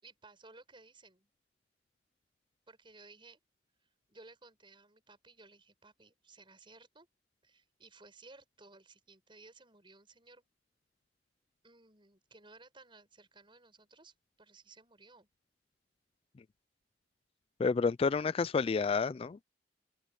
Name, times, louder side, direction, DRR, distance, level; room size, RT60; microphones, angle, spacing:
voice 1, 0.0-1.3 2.7-3.4 3.8-7.1 7.4-10.5 11.6-15.3, right 3 dB, 30° right, 6.7 m, -58 dB
voice 2, 17.6-19.4, left 4 dB, 30° left, 0.3 m, -29 dB
head